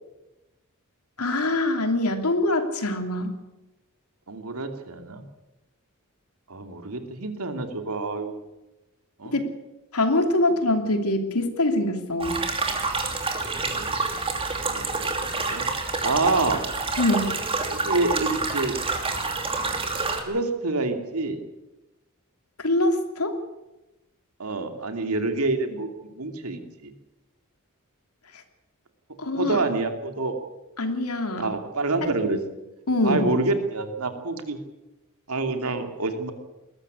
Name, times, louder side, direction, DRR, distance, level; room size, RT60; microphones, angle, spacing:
voice 1, 1.2-3.3 9.3-9.4 9.9-12.4 17.0-17.3 22.6-23.4 29.2-29.6 30.8-31.5 32.9-33.3, left 2 dB, 90° left, 6 dB, 3.0 m, -24 dB
voice 2, 4.3-5.2 6.5-8.3 9.2-9.4 13.5-13.9 14.7-15.7 16.0-16.6 17.7-18.8 20.2-21.4 24.4-26.9 29.4-30.3 31.4-32.4 33.0-34.6 35.3-36.3, right 3 dB, 80° right, 6 dB, 2.7 m, -27 dB
sound 1, 12.2-20.2, right 3 dB, 25° right, 2.8 m, -28 dB
21.0 x 13.5 x 9.8 m, 1.0 s
head